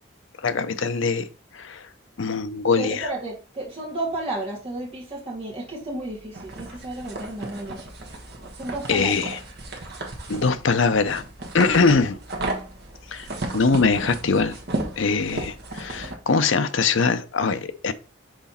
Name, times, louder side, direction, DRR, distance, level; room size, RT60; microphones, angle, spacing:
voice 1, 0.4-1.3 1.5-1.9 2.2-3.1 8.9-9.4 10.3-11.2 11.5-12.2 13.1-13.3 13.5-14.6 15.0-17.9, left 4 dB, 70° left, 0.6 m, -22 dB
voice 2, 2.8-7.8 8.5-9.1, right 2 dB, 30° right, 2.3 m, -32 dB
sound 1, 6.3-16.2, right 2 dB, 50° right, 1.3 m, -34 dB
6.1 x 4.1 x 4.2 m
head